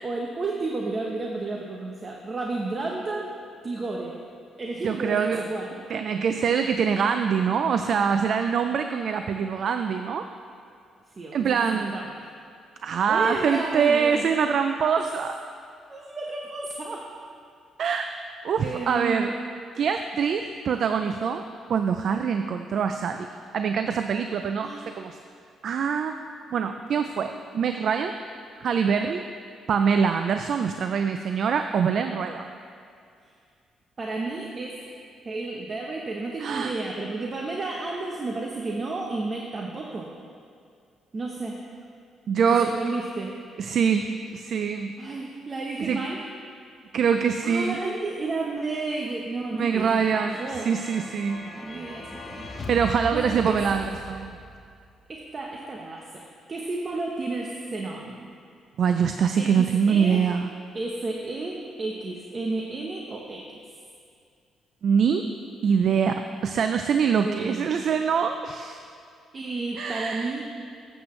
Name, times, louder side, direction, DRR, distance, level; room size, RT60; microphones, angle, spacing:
voice 1, 0.0-3.3 3.6-4.2 4.6-5.9 11.2-12.3 13.1-14.3 15.9-17.2 18.6-19.4 24.6-24.9 33.2-33.3 34.0-40.2 41.1-41.7 42.5-43.4 45.0-46.3 47.4-50.8 51.4-52.5 53.1-53.7 55.1-58.3 59.4-60.3 60.7-63.6 67.2-67.8 69.3-70.4, right 3 dB, 35° right, 0 dB, 0.9 m, -32 dB
voice 2, 4.8-5.4 5.9-10.3 11.3-12.0 12.8-15.4 17.8-18.1 18.4-19.3 19.8-21.4 21.7-25.2 25.6-26.2 26.5-28.1 28.6-29.2 29.7-32.5 36.4-36.7 42.3-42.7 43.6-45.0 45.8-46.0 46.9-47.8 49.5-51.4 52.7-54.4 58.8-60.5 64.8-65.3 65.6-68.8 69.8-70.3, right 6 dB, 60° right, 7 dB, 0.4 m, -24 dB
sound 1, 50.3-55.0, left 2 dB, 35° left, 1.3 m, -39 dB
14.5 x 7.9 x 3.2 m, 2.3 s
cardioid pair, 90°, 0 cm